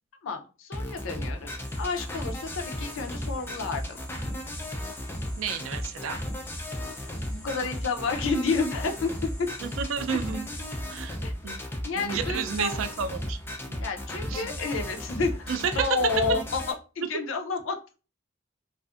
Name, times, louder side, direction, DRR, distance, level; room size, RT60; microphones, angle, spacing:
voice 1, 0.2-3.8 7.3-9.5 11.2-11.3 11.8-12.8 13.8-16.6 17.0-17.8, left 4 dB, 75° left, 4 dB, 0.5 m, -30 dB
sound 1, 0.7-16.7, equal, 10° left, 0.3 m, -35 dB
sound 2, 1.6-10.8, left 1 dB, 5° right, 1.2 m, -50 dB
voice 2, 5.4-6.2 9.6-10.5 10.9-11.2 11.4-11.6 12.0-13.4 13.7-13.8 14.3-14.5 15.5-15.9, right 6 dB, 75° right, 9 dB, 0.3 m, -31 dB
2.5 x 2.4 x 2.4 m, 0.34 s
head